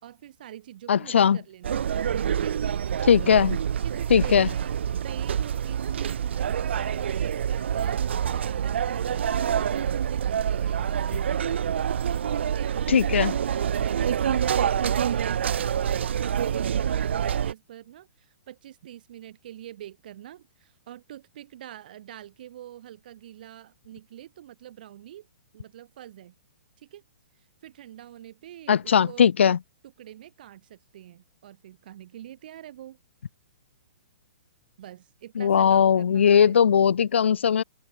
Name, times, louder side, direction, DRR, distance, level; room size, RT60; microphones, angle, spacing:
voice 1, 0.0-1.9 2.4-2.6 3.8-4.7 5.0-11.5 12.1-25.3 25.5-26.3 26.8-27.0 27.4-29.6 29.8-33.0 34.8-36.6, right 12 dB, 50° right, 2.1 m, -45 dB
voice 2, 0.9-1.4 3.0-3.6 4.1-4.5 12.9-13.3 28.7-29.6 35.4-37.6, left 7 dB, 80° left, 0.9 m, -19 dB
sound 1, 1.6-17.5, right 8 dB, 70° right, 0.5 m, -26 dB
hypercardioid pair, 165°, 6 cm